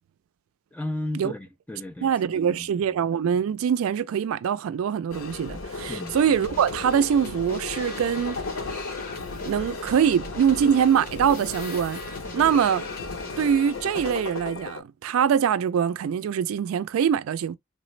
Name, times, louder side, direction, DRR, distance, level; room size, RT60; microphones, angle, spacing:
voice 1, 0.7-3.0 5.9-6.2, left 1 dB, 5° left, 0.3 m, -35 dB
voice 2, 2.0-8.4 9.5-12.0 12.3-12.9 13.4-17.6, right 8 dB, 85° right, 0.3 m, -23 dB
sound 1, 5.1-14.8, left 3 dB, 80° left, 0.9 m, -35 dB
sound 2, 6.1-13.7, left 3 dB, 45° left, 0.9 m, -44 dB
3.2 x 2.0 x 3.1 m
head